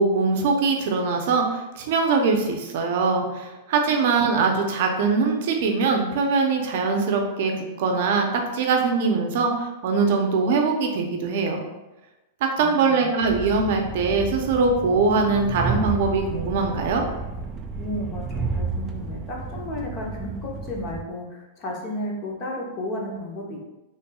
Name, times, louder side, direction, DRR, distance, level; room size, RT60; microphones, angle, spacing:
voice 1, 0.0-7.5 7.8-11.6 12.6-17.0, right 4 dB, 55° right, 3 dB, 0.6 m, -22 dB
voice 2, 12.6-13.1 17.8-23.6, left 1 dB, 30° left, -1 dB, 0.8 m, -33 dB
Train, 13.2-21.0, right 3 dB, 15° right, 0.3 m, -31 dB
4.2 x 3.2 x 2.3 m, 1.0 s
supercardioid pair, 160°, 0 cm